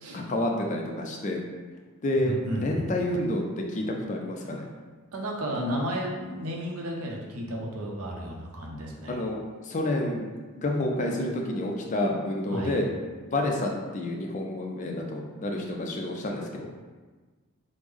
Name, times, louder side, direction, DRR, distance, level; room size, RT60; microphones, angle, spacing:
voice 1, 0.1-1.4 2.0-4.6 9.1-9.4 9.6-10.3 10.5-12.9 13.2-16.7, left 1 dB, 35° left, 1 dB, 0.3 m, -29 dB
voice 2, 2.2-2.9 5.1-9.2 12.5-12.8, equal, 90° right, -1 dB, 0.6 m, -33 dB
3.1 x 2.0 x 3.5 m, 1.4 s
head